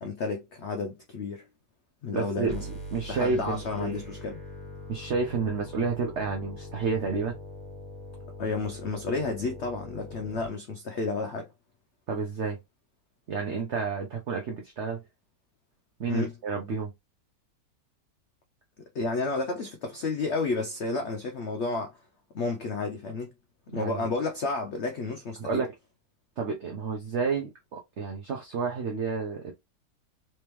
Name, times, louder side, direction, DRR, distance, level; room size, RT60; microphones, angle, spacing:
voice 1, 0.0-1.5 2.0-2.7 3.1-4.4 8.4-11.5 16.1-16.3 18.9-22.0 22.3-23.3 23.7-25.6, left 3 dB, 85° left, 0.6 m, -31 dB
voice 2, 2.1-2.6 2.9-4.0 4.9-7.4 12.1-12.6 13.3-15.0 16.0-16.9 23.7-24.1 25.4-25.7 26.4-29.5, right 5 dB, 55° right, 0.9 m, -30 dB
sound 1, 2.5-10.5, left 1 dB, 5° left, 1.5 m, -42 dB
3.4 x 3.4 x 3.0 m
omnidirectional pair, 1.9 m